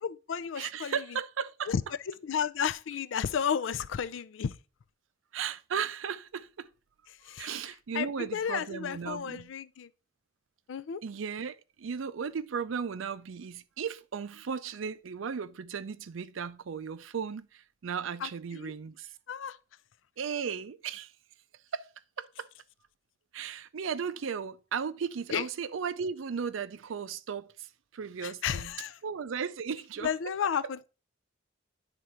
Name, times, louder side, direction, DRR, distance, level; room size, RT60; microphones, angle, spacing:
voice 1, 0.0-1.0 1.7-1.8 2.1-4.6 7.2-7.5 7.9-9.9 10.7-11.0 18.2-18.7 19.3-19.6 25.3-25.5 28.2-29.0 30.0-30.9, left 7 dB, 75° left, 0.4 m, -32 dB
voice 2, 0.6-1.7 5.3-6.7 7.3-9.5 11.0-19.1 20.2-21.1 21.7-21.9 22.2-22.5 23.3-28.8 29.0-30.3, right 6 dB, 85° right, 0.5 m, -36 dB
9.4 x 3.7 x 4.3 m
head